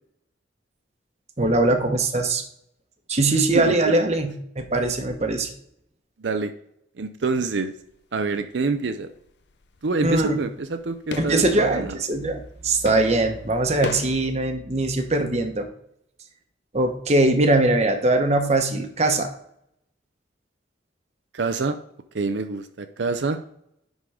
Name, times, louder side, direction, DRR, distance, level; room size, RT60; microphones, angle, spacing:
voice 1, 1.4-2.4 3.1-5.5 10.0-10.4 11.2-15.7 16.7-19.3, right 2 dB, 35° right, 5 dB, 1.0 m, -21 dB
voice 2, 3.5-4.0 6.2-6.5 7.0-7.7 8.1-9.1 9.8-12.0 21.3-21.8 22.1-23.4, right 3 dB, 70° right, 8 dB, 0.6 m, -26 dB
sound 1, 7.8-8.2 8.5-14.3, left 3 dB, 65° left, 0.6 m, -38 dB
10.5 x 3.8 x 4.9 m, 0.74 s
head